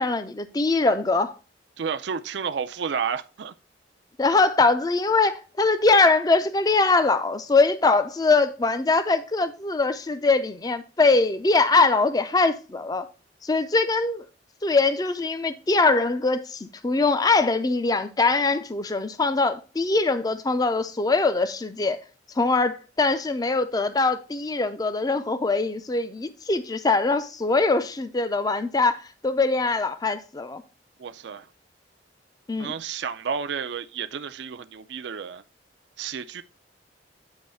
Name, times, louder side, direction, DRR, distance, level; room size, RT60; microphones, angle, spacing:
voice 1, 0.0-1.3 4.2-13.1 13.4-14.3 14.6-22.0 22.4-30.6 32.5-32.7, left 3 dB, 20° left, 0.4 m, -22 dB
voice 2, 1.8-3.5 31.0-31.5 32.6-35.4 36.0-36.4, right 6 dB, 70° right, 0.4 m, -31 dB
9.0 x 3.1 x 5.5 m
head